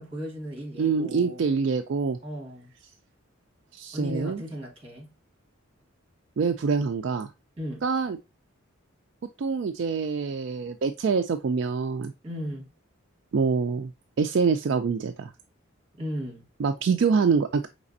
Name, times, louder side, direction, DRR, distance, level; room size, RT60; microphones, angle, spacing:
voice 1, 0.0-1.4 2.2-2.7 3.9-5.1 7.6-7.8 12.2-12.7 15.9-16.4, equal, 25° right, 1.6 m, -36 dB
voice 2, 0.8-2.2 3.7-4.4 6.4-7.3 7.8-8.2 9.4-12.1 13.3-13.9 14.2-15.3 16.6-17.7, right 5 dB, 55° right, 0.3 m, -25 dB
5.0 x 3.3 x 2.6 m
head